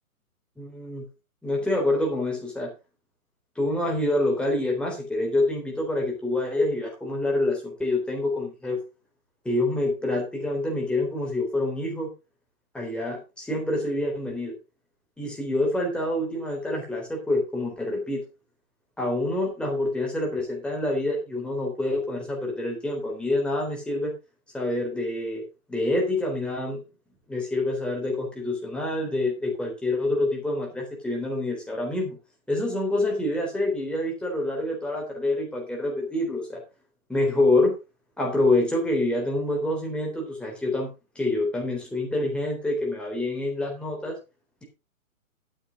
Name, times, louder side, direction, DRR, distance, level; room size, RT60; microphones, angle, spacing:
voice 1, 0.6-1.1 1.4-2.7 3.6-8.8 9.4-12.1 12.7-14.5 15.2-18.3 19.0-24.1 24.5-25.4 25.7-26.8 27.3-32.2 32.5-36.6 37.1-37.7 38.2-40.9 41.2-44.2, left 2 dB, ahead, -1 dB, 3.8 m, -26 dB
12.5 x 9.0 x 3.9 m, 0.28 s
figure-of-eight pair, 130°, 43 cm